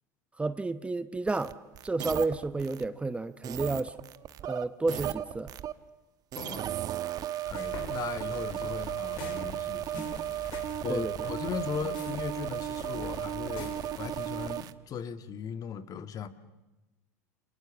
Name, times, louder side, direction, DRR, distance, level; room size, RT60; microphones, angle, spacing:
voice 1, 0.4-1.6 1.8-4.0 4.4-5.5 10.9-11.1, right 3 dB, 15° right, 0.9 m, -31 dB
sound 1, 1.3-2.8 3.4-5.7 6.3-14.7, right 12 dB, 45° right, 1.1 m, -35 dB
voice 2, 6.4-6.7 7.5-10.0 10.3-16.3, left 7 dB, 40° left, 1.8 m, -38 dB
sound 2, 7.5-14.4, left 6 dB, 60° left, 4.7 m, -44 dB
28.5 x 26.0 x 7.2 m
hypercardioid pair, 90°, 9 cm